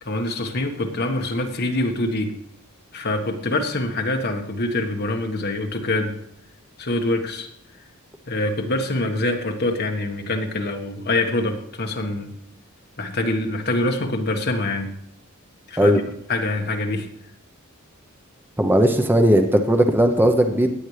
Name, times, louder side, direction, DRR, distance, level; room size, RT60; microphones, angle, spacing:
voice 1, 0.0-2.3 2.9-6.1 6.8-7.5 8.3-12.3 13.0-14.9 15.7-16.0 16.3-17.1, left 2 dB, 50° left, 3 dB, 1.5 m, -25 dB
voice 2, 18.6-20.7, right 1 dB, 10° right, 5 dB, 0.8 m, -17 dB
16.5 x 9.3 x 3.3 m, 0.70 s
head